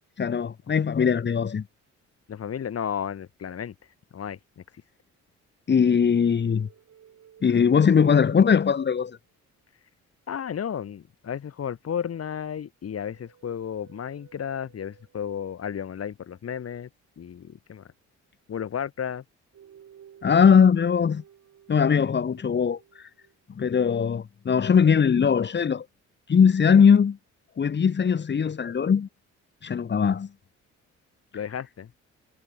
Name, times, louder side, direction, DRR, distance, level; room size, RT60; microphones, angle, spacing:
voice 1, 0.2-1.6 5.7-6.7 7.4-9.2 20.2-21.2 21.7-22.8 23.5-25.8 26.3-27.2 27.6-29.1 29.6-30.3, left 6 dB, 35° left, 1.3 m, -20 dB
voice 2, 2.3-3.7 4.1-4.6 10.3-16.9 17.2-17.9 18.5-19.2 31.3-31.9, left 8 dB, 55° left, 3.2 m, -33 dB
sound 1, 6.1-9.3 12.8-15.4 19.5-23.3, right 9 dB, 60° right, 7.4 m, -55 dB
cardioid pair, 90°, 30 cm